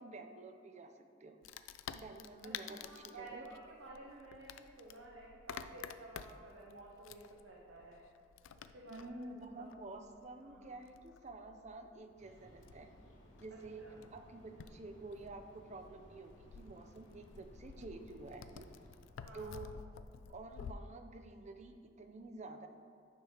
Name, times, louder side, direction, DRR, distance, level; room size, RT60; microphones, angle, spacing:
voice 1, 0.0-1.4 1.9-3.4 8.9-12.9 13.4-18.7 19.3-20.0 20.3-22.7, right 2 dB, 35° right, 6 dB, 0.5 m, -50 dB
Wood, 1.4-20.7, left 7 dB, 90° left, 0.3 m, -52 dB
voice 2, 2.4-8.0 8.7-9.2 9.5-9.7 10.4-10.7 13.8-13.9 19.2-19.6, right 2 dB, 90° right, -3 dB, 0.8 m, -53 dB
sound 1, 12.2-19.0, equal, 70° left, 1.4 m, -61 dB
9.3 x 3.3 x 5.6 m, 2.4 s
head